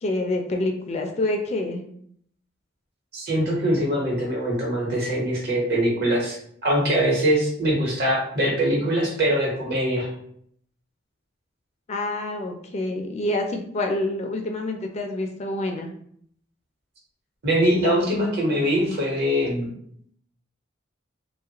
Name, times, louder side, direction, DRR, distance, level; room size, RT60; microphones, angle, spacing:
voice 1, 0.0-1.8 11.9-15.9, left 2 dB, 35° left, 4 dB, 0.3 m, -27 dB
voice 2, 3.1-10.1 17.4-19.7, equal, 55° right, -2 dB, 1.1 m, -23 dB
3.0 x 2.4 x 2.8 m, 0.65 s
head